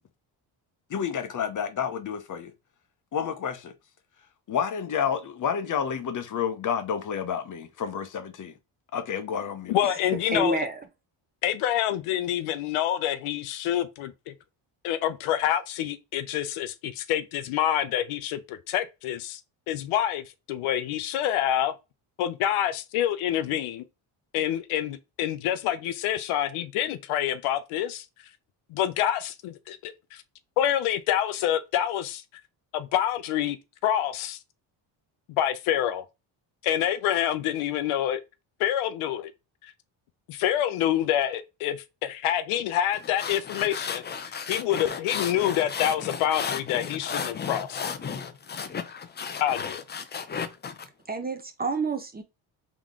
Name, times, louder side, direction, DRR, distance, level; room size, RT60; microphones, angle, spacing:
voice 1, 0.9-2.5 3.1-3.7 4.5-8.5 8.9-9.8, left 7 dB, 40° left, 0.8 m, -30 dB
voice 2, 9.7-10.6 11.4-14.3 14.8-19.4 19.7-21.7 22.2-23.8 24.3-28.1 28.7-30.2 30.6-32.2 32.7-33.6 33.8-34.4 35.4-36.0 36.6-38.2 38.6-39.3 39.6-39.7 40.3-47.8 49.4-49.8, left 11 dB, 80° left, 0.7 m, -27 dB
voice 3, 10.3-10.8 51.1-52.2, right 2 dB, 20° right, 0.6 m, -28 dB
sound 1, 42.9-50.9, left 6 dB, 25° left, 0.4 m, -34 dB
3.7 x 3.0 x 3.6 m
cardioid pair, 110°, 49 cm